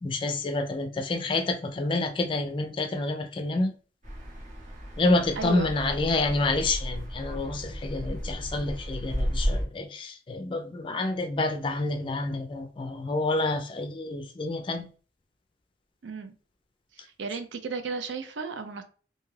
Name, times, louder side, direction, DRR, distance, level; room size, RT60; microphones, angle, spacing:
voice 1, 0.0-3.7 5.0-14.9, left 2 dB, 30° left, 0.4 m, -28 dB
sound 1, 4.0-9.6, equal, 40° right, 0.8 m, -33 dB
voice 2, 5.4-5.7 16.0-16.3 17.2-18.8, right 4 dB, 80° right, 0.5 m, -34 dB
2.6 x 2.3 x 3.1 m
head